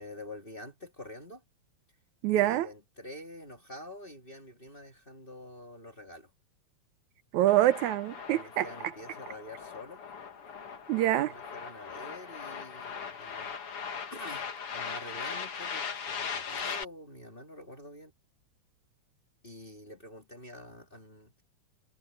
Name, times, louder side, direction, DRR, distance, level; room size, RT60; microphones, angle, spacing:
voice 1, 0.0-1.4 2.4-6.3 8.3-10.0 11.2-13.5 14.1-14.4 14.7-18.1 19.4-21.3, left 1 dB, 20° left, 2.0 m, -47 dB
voice 2, 2.2-2.7 7.3-8.7 10.9-11.3, right 14 dB, 80° right, 2.2 m, -25 dB
sound 1, 7.5-16.8, left 6 dB, 50° left, 2.8 m, -39 dB
omnidirectional pair, 3.4 m